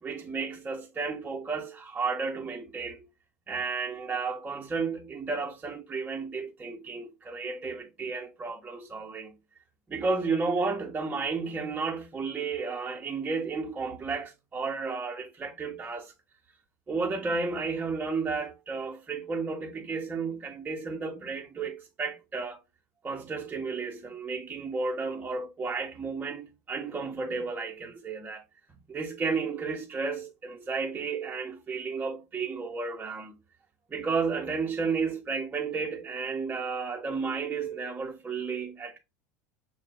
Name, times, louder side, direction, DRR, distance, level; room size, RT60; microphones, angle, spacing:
voice 1, 0.0-3.1 3.5-9.3 9.9-16.1 16.9-22.6 23.0-28.4 28.9-33.4 33.9-39.0, right 4 dB, 20° right, 0.9 m, -32 dB
6.6 x 2.3 x 2.2 m
hypercardioid pair, 90°, 8 cm